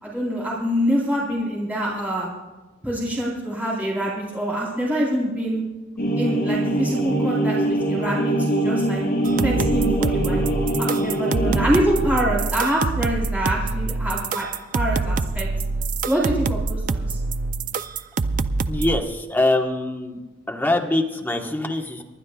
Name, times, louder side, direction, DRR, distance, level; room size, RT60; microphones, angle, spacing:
voice 1, 0.0-2.3 2.8-5.6 6.1-8.3 8.6-9.0 9.4-10.4 10.8-14.5 14.7-15.5 16.0-17.2, equal, 10° right, -6 dB, 4.0 m, -25 dB
sound 1, 6.0-11.7, right 1 dB, 50° left, 4.6 m, -23 dB
sound 2, 9.2-19.0, right 3 dB, 40° right, 0.4 m, -25 dB
voice 2, 18.6-20.2 20.5-22.0, left 2 dB, 10° left, 1 dB, 1.3 m, -23 dB
29.0 x 12.0 x 2.4 m, 1.2 s
head